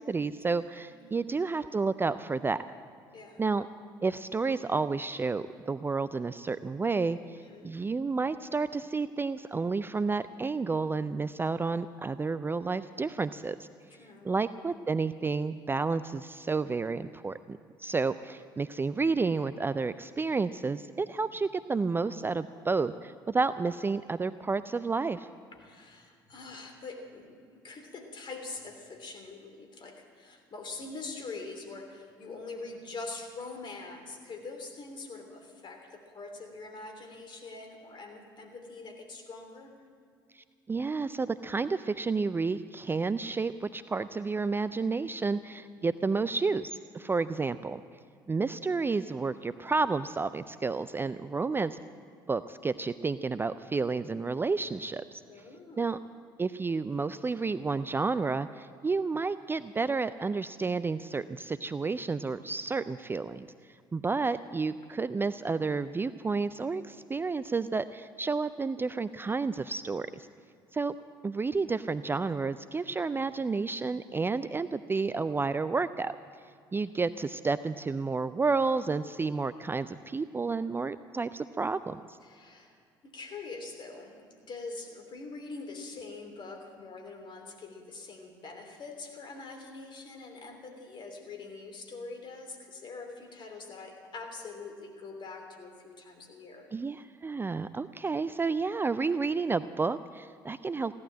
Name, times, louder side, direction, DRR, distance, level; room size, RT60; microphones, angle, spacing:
voice 1, 0.0-2.6 3.4-3.7 4.0-13.7 14.2-25.3 40.3-47.8 48.3-51.8 52.3-55.2 55.8-56.0 56.4-63.5 63.9-70.3 70.7-70.9 71.2-76.2 76.7-82.2 96.7-100.9, right 4 dB, 20° right, 14 dB, 0.4 m, -31 dB
voice 2, 0.8-1.2 3.1-3.4 7.4-7.7 13.9-14.3 25.6-27.4 27.6-39.8 47.0-47.1 55.3-55.8 82.2-82.7 83.0-96.7, left 3 dB, 45° left, 4 dB, 3.1 m, -44 dB
16.0 x 12.0 x 7.6 m, 2.3 s
hypercardioid pair, 55°, 12 cm